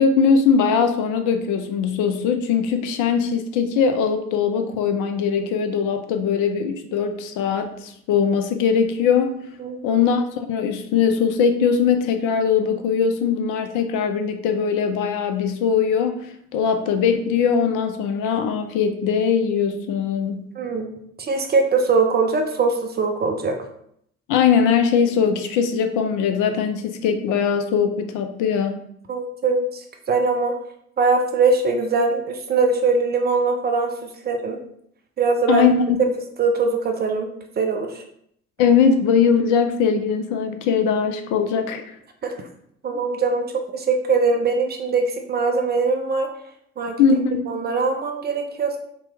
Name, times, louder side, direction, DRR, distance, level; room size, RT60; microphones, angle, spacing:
voice 1, 0.0-9.3 9.8-20.4 24.3-28.8 35.5-35.7 38.6-41.8 47.0-47.6, left 6 dB, 55° left, 7 dB, 0.4 m, -20 dB
voice 2, 20.6-20.9 21.2-23.5 29.1-30.5 31.0-34.6 35.2-35.6 36.4-37.3 37.6-38.0 42.2-42.3 42.8-43.4 43.7-46.3 46.8-47.0 47.5-48.8, right 4 dB, 25° right, 3 dB, 0.4 m, -21 dB
2.8 x 2.2 x 3.2 m, 0.70 s
figure-of-eight pair, 50°, 39 cm